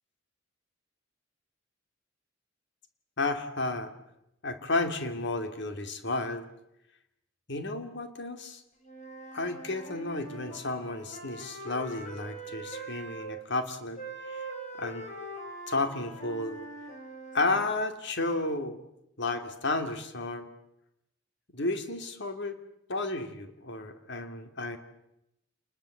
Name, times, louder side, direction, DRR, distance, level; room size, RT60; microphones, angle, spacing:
voice 1, 3.2-3.9 4.4-6.5 7.5-8.6 9.3-14.0 14.3-14.4 14.8-15.1 15.7-16.6 17.3-18.8 19.2-20.5 21.5-22.6 22.9-24.8, left 2 dB, 65° left, 8 dB, 2.7 m, -32 dB
Wind instrument woodwind instrument, 8.8-13.3 14.0-17.6, right 2 dB, 40° left, 6.2 m, -43 dB
28.5 x 21.5 x 8.0 m, 0.83 s
head